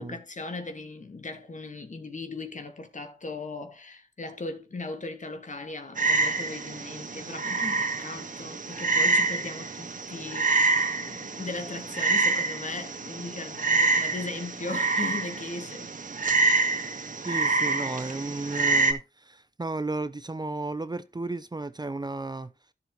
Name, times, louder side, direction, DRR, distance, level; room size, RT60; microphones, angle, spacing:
voice 1, 0.0-15.9, left 3 dB, 45° left, 2.4 m, -38 dB
Frog, 6.0-18.9, right 3 dB, 50° right, 2.0 m, -27 dB
voice 2, 17.2-22.5, right 2 dB, 25° right, 0.8 m, -33 dB
11.0 x 6.5 x 4.0 m
cardioid pair, 50°, 17 cm